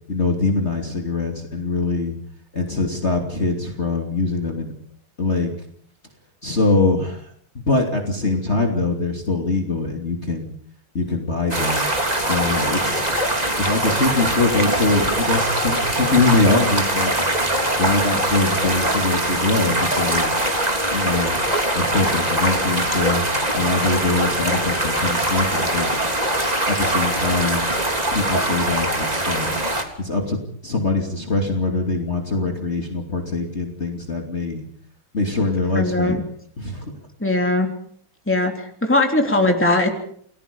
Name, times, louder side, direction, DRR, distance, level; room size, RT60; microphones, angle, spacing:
voice 1, 0.1-2.1 2.5-4.7 5.2-5.5 6.4-7.3 7.7-10.5 10.9-13.1 13.6-17.1 17.8-20.4 20.9-21.4 21.7-23.2 23.5-25.9 26.7-27.7 28.1-29.6 30.0-30.4 30.6-34.7 35.1-36.2 36.6-36.9, left 3 dB, 30° left, 2 dB, 3.0 m, -23 dB
sound 1, 11.5-29.8, right 1 dB, 20° right, 3.3 m, -22 dB
voice 2, 35.7-36.2 37.2-37.7 38.3-39.9, left 2 dB, 5° left, 3 dB, 3.4 m, -19 dB
29.5 x 20.0 x 5.4 m, 0.62 s
omnidirectional pair, 2.3 m